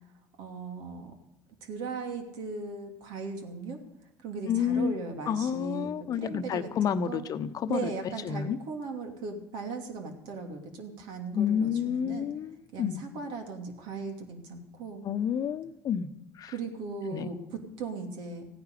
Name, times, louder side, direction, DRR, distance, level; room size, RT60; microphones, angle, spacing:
voice 1, 0.4-1.1 1.6-3.8 4.2-5.9 6.2-7.2 7.7-12.3 12.7-15.0 16.5-18.5, right 4 dB, 65° right, 4 dB, 2.9 m, -38 dB
voice 2, 4.5-4.9 5.3-7.9 8.2-8.6 11.3-13.0 15.0-16.1 16.4-16.5 17.1-17.3, left 8 dB, 50° left, 11 dB, 1.0 m, -29 dB
15.5 x 9.7 x 6.8 m, 0.91 s
hypercardioid pair, 80°, 8 cm